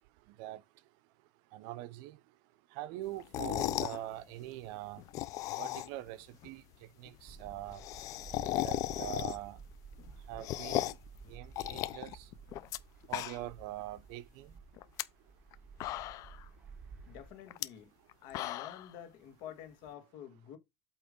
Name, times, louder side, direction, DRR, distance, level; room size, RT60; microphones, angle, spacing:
voice 1, 1.5-2.2 2.8-5.0 5.6-6.6 7.0-7.8 8.6-9.6 10.3-10.9 11.3-12.1 13.1-14.5, right 15 dB, 70° right, 0.6 m, -43 dB
sound 1, 3.2-4.0 5.0-6.1 6.4-6.5 6.7-6.8 7.1-7.2 7.4-9.6 10.0-11.1 11.6-12.8 13.0-13.6 14.0-14.1 14.8-15.0 15.5-15.6 15.8-16.4 17.5-17.7 18.1-18.9, left 15 dB, 50° left, 0.5 m, -36 dB
sound 2, 7.3-17.3, right 5 dB, 15° right, 1.8 m, -53 dB
voice 2, 17.1-17.9 18.2-20.6, left 10 dB, 70° left, 1.5 m, -49 dB
8.3 x 3.0 x 5.1 m
cardioid pair, 140°, 8 cm